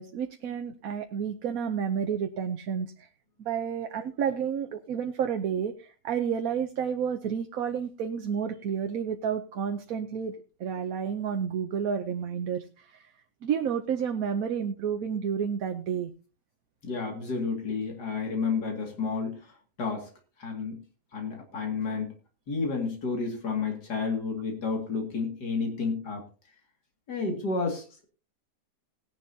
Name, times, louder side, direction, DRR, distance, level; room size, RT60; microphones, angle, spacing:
voice 1, 0.0-3.1 3.4-13.1 13.4-16.1, right 7 dB, 65° right, 6 dB, 1.2 m, -30 dB
voice 2, 16.8-19.5 19.8-20.1 20.4-20.8 21.1-22.1 22.5-26.2 27.1-28.0, left 4 dB, 85° left, 3 dB, 2.8 m, -31 dB
18.5 x 10.5 x 2.8 m, 0.32 s
omnidirectional pair, 1.7 m